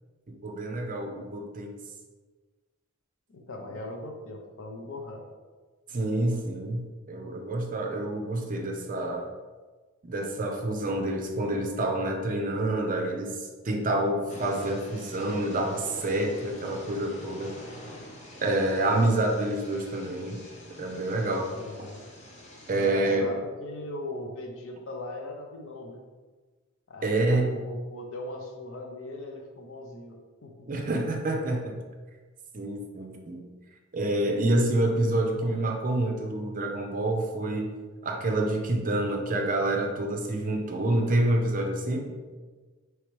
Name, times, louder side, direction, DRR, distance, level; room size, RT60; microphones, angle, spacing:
voice 1, 0.3-1.7 5.9-9.3 10.0-17.6 18.4-20.4 20.8-21.5 22.7-23.3 27.0-27.5 30.7-31.8 32.5-33.4 33.9-37.7 38.0-42.1, right 1 dB, 40° right, 2 dB, 0.6 m, -27 dB
voice 2, 3.3-5.2 21.5-22.1 22.7-26.0 26.9-30.2 30.4-30.7, left 1 dB, 65° left, 2 dB, 0.7 m, -39 dB
sound 1, 14.3-22.9, left 1 dB, 35° left, 0.7 m, -46 dB
4.7 x 3.2 x 3.1 m, 1.3 s
head